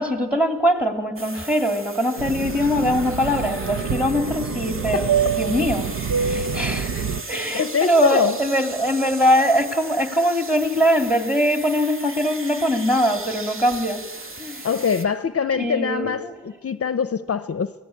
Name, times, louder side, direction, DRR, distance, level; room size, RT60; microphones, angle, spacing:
voice 1, 0.0-5.9 6.2-14.0 14.4-14.7 15.5-16.3, equal, 5° right, 7 dB, 2.7 m, -22 dB
sound 1, 1.2-15.1, right 2 dB, 40° right, 1.7 m, -36 dB
Fixed-wing aircraft airplane, 2.2-7.2, right 7 dB, 65° right, 0.7 m, -26 dB
voice 2, 7.5-8.4 14.6-17.7, left 6 dB, 45° left, 13 dB, 0.7 m, -23 dB
25.0 x 17.5 x 8.6 m, 1.2 s
wide cardioid pair, 115°, 32 cm